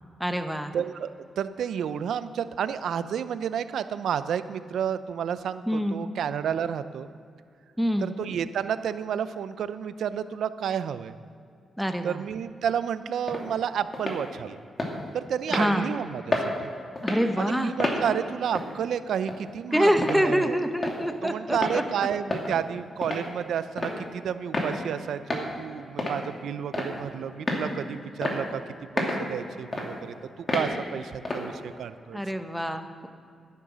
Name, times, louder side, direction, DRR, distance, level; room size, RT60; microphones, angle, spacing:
voice 1, 0.2-0.7 5.7-6.1 7.8-8.1 11.8-12.2 15.5-15.9 17.0-17.7 19.7-21.8 32.1-33.1, equal, ahead, 7 dB, 1.1 m, -26 dB
voice 2, 0.7-1.1 1.4-7.1 8.0-11.1 12.0-14.6 15.1-16.7 17.4-20.6 21.2-28.6 29.0-30.1 30.5-32.2, right 8 dB, 80° right, 13 dB, 0.6 m, -31 dB
sound 1, 13.3-13.4 13.9-14.2 14.8-14.9 15.5-15.7 16.3-16.5 17.0-17.2 17.8-18.0 18.6-18.7 19.3-19.4 20.0-20.2 20.8-21.0 21.5-21.8 22.3-22.5 23.0-23.2 23.8-24.0 24.5-24.7 25.3-25.5 26.0-26.2 26.7-27.0 27.5-27.7 28.2-28.4 29.0-29.2 29.7-29.9 30.5-30.7 31.3-31.5, left 2 dB, 35° left, 2.7 m, -29 dB
13.0 x 10.5 x 6.3 m, 2.3 s
cardioid pair, 75°, 0 cm